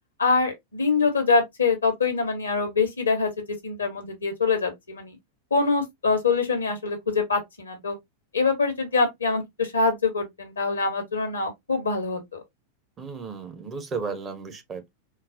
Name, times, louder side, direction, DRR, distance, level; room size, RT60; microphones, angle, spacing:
voice 1, 0.2-5.2 5.5-8.0 8.3-12.4, left 4 dB, 75° left, 0.9 m, -24 dB
voice 2, 13.0-14.9, right 5 dB, 25° right, 0.8 m, -34 dB
3.9 x 2.0 x 2.5 m
figure-of-eight pair, 90°, 0 cm